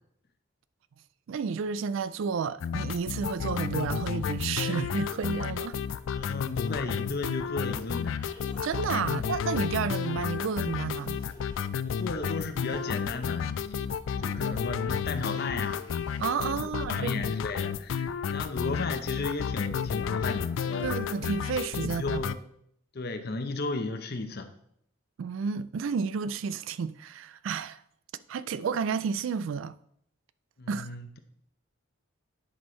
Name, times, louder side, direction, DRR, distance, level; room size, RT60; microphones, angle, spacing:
voice 1, 1.3-5.8 8.6-11.2 16.2-17.3 20.8-22.2 25.2-27.8 28.3-29.8 30.7-30.9, right 6 dB, 65° right, 0.3 m, -31 dB
sound 1, 2.6-22.4, left 7 dB, 65° left, 0.3 m, -32 dB
voice 2, 6.1-8.2 9.1-9.2 11.8-13.8 14.2-15.8 16.3-20.9 21.8-22.4 22.9-24.5 30.6-31.1, left 3 dB, 50° left, 0.7 m, -35 dB
sound 2, 7.9-16.5, left 2 dB, 20° left, 1.5 m, -55 dB
9.9 x 5.4 x 3.2 m
head